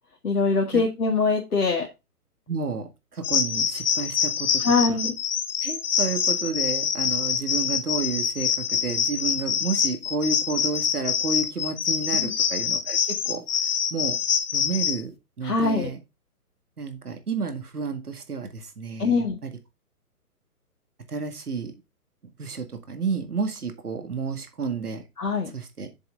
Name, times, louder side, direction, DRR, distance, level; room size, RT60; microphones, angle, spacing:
voice 1, 0.2-1.9 4.6-5.1 12.1-12.3 15.4-15.9 19.0-19.4 25.2-25.5, left 4 dB, 65° left, 0 dB, 2.1 m, -23 dB
voice 2, 2.5-4.6 4.9-5.0 5.6-13.4 13.9-14.2 14.5-16.0 16.8-19.5 21.1-21.7 22.4-25.0 25.5-25.9, right 4 dB, 70° right, 7 dB, 2.1 m, -31 dB
sound 1, 3.2-15.0, left 8 dB, 35° left, 1.3 m, -25 dB
7.7 x 6.9 x 3.7 m, 0.24 s
figure-of-eight pair, 130°, 47 cm